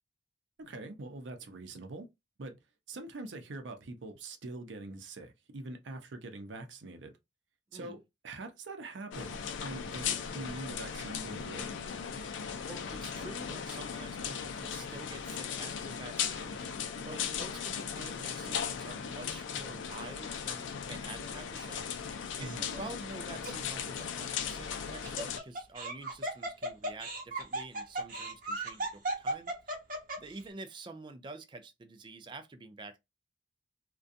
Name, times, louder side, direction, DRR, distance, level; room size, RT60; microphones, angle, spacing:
voice 1, 0.6-2.1 2.4-2.6 2.9-7.1 7.7-8.0 8.2-11.7 22.4-22.7, right 2 dB, 80° right, 0.6 m, -43 dB
sound 1, 9.1-25.4, left 7 dB, 85° left, 0.4 m, -37 dB
voice 2, 12.7-22.1 22.4-29.7 30.2-33.0, right 3 dB, 25° right, 0.3 m, -48 dB
Laughter, 22.4-22.8 23.4-23.5 24.8-30.4, right 1 dB, 45° right, 0.7 m, -36 dB
2.5 x 2.2 x 2.4 m
head